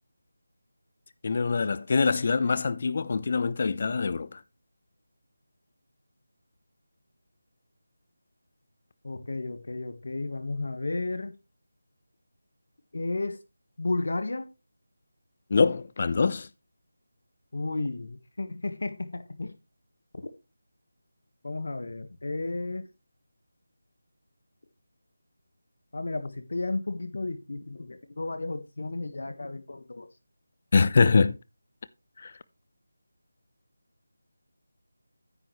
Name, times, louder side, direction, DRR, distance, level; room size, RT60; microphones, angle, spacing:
voice 1, 1.2-4.4 15.5-16.5 30.7-31.4 32.2-32.3, left 4 dB, 40° left, 0.7 m, -24 dB
voice 2, 9.0-11.4 12.9-13.4 13.8-14.5 17.5-19.5 21.4-22.9 25.9-30.1, left 2 dB, 65° left, 1.5 m, -33 dB
9.5 x 9.0 x 3.2 m
figure-of-eight pair, 170°, 0 cm